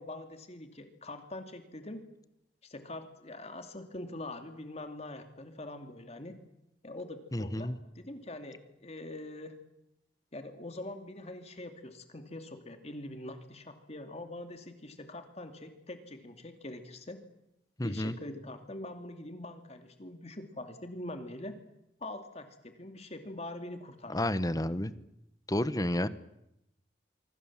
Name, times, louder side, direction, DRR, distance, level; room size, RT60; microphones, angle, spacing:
voice 1, 0.0-2.0 2.6-6.4 6.8-9.5 10.3-17.2 17.8-21.5 22.0-24.2, left 1 dB, 35° left, 7 dB, 2.6 m, -43 dB
voice 2, 7.3-7.8 17.8-18.1 24.1-24.9 25.5-26.1, left 1 dB, 20° left, 14 dB, 1.1 m, -30 dB
25.5 x 25.0 x 7.5 m, 0.83 s
head